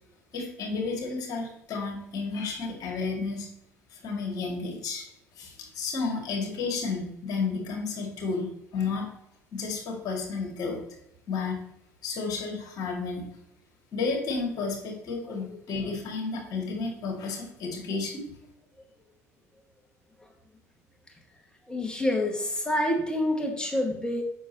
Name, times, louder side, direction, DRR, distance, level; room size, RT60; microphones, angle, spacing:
voice 1, 0.3-3.5 3.9-5.0 5.4-9.1 9.5-10.8 11.3-11.6 12.0-13.3 13.9-18.2, left 4 dB, 50° left, 0 dB, 2.3 m, -32 dB
voice 2, 21.7-24.2, left 1 dB, 10° left, 2 dB, 1.7 m, -27 dB
7.2 x 6.2 x 2.9 m, 0.77 s
figure-of-eight pair, 60°, 8 cm